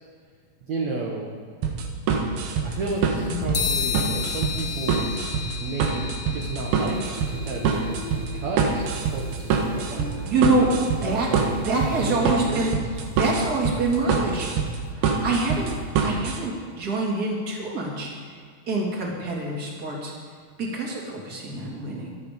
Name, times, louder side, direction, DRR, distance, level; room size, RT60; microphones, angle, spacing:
voice 1, 0.6-1.4 2.6-5.1 5.6-8.0 8.3-10.2 11.0-11.6 12.0-12.2 12.5-12.7, right 3 dB, 60° right, -1 dB, 2.3 m, -32 dB
sound 1, 1.6-16.4, right 5 dB, 90° right, 3.5 m, -25 dB
sound 2, 2.9-13.4, left 3 dB, 75° left, 2.8 m, -40 dB
sound 3, 3.5-11.2, left 8 dB, 40° left, 2.3 m, -34 dB
voice 2, 10.2-11.3 11.6-12.7 13.2-14.6 14.9-15.7 16.0-18.3 18.7-20.1 20.6-22.2, right 2 dB, 25° right, -2 dB, 2.9 m, -26 dB
24.5 x 8.5 x 5.2 m, 2.1 s
omnidirectional pair, 4.3 m